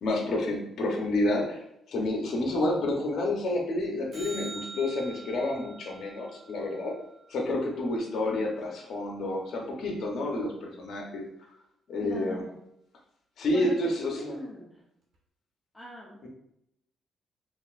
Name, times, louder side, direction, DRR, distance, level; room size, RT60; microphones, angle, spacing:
voice 1, 0.0-6.9 7.3-11.2 11.9-12.4 13.4-14.3, left 1 dB, 65° left, 0 dB, 0.9 m, -29 dB
sound 1, 4.1-8.6 15.1-15.2, right 3 dB, 65° right, 1.3 m, -46 dB
voice 2, 12.0-12.6 13.5-14.9 15.7-16.3, left 1 dB, 10° left, -3 dB, 0.7 m, -41 dB
5.3 x 2.6 x 2.5 m, 0.78 s
cardioid pair, 90°, 0 cm